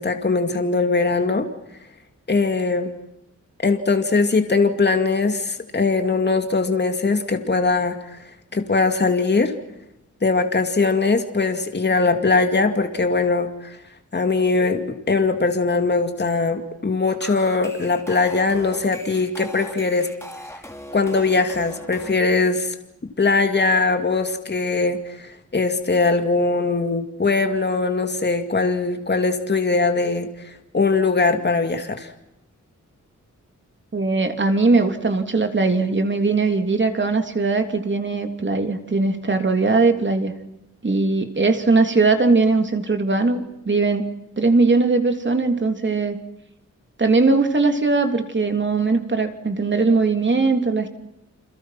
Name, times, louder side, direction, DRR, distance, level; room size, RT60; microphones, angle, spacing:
voice 1, 0.0-1.5 2.3-2.9 3.6-8.0 8.5-9.5 10.2-13.8 14.1-20.1 20.9-22.7 23.2-32.1, left 3 dB, 35° left, 6 dB, 2.5 m, -21 dB
sound 1, 17.1-22.1, equal, 10° left, 5.5 m, -39 dB
voice 2, 33.9-40.3 40.8-44.1 44.4-46.2 47.0-50.9, right 3 dB, 40° right, 6 dB, 3.3 m, -20 dB
29.5 x 27.5 x 6.0 m, 0.85 s
wide cardioid pair, 115°, 30 cm